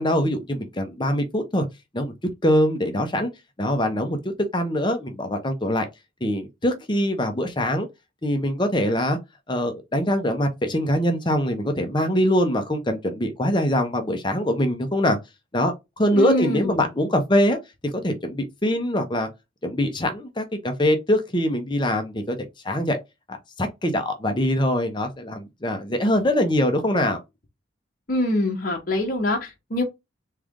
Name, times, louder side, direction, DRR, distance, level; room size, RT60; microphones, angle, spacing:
voice 1, 0.0-1.6 1.9-2.1 2.4-3.3 3.6-4.2 4.5-5.9 6.2-7.9 8.2-9.2 9.5-15.2 15.5-17.6 18.0-19.3 19.6-22.4 22.6-23.0 23.3-27.2, equal, 25° left, 0.8 m, -23 dB
voice 2, 16.1-16.8 28.1-29.8, left 1 dB, 45° left, 1.0 m, -24 dB
3.7 x 3.3 x 3.6 m
head